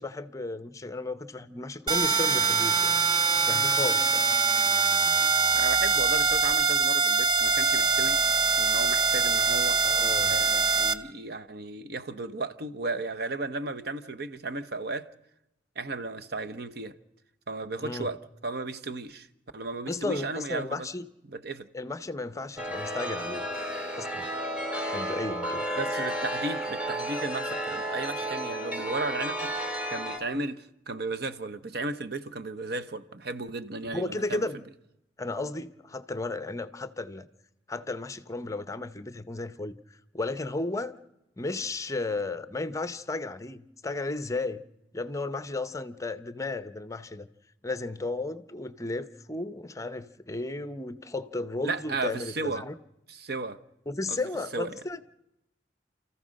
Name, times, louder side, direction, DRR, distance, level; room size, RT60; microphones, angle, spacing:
voice 1, 0.0-2.9 3.5-4.3 9.8-10.3 17.8-18.1 19.9-21.1 21.7-23.5 23.9-24.3 24.9-25.7 33.9-34.6 35.2-37.3 37.7-41.0 41.4-44.6 44.9-47.3 47.6-52.7 53.9-55.0, left 2 dB, 15° left, 0.7 m, -34 dB
sound 1, 1.9-10.9, right 5 dB, 25° right, 0.7 m, -23 dB
voice 2, 5.5-8.2 8.6-9.8 10.3-15.1 15.8-17.0 17.5-19.3 19.5-20.9 21.2-21.7 25.8-29.5 29.9-34.4 51.6-52.6 53.1-53.6 54.1-54.2 54.5-54.7, right 3 dB, 60° right, 0.9 m, -34 dB
Chime, 22.6-30.2, equal, 5° right, 2.7 m, -32 dB
29.5 x 14.5 x 6.4 m
head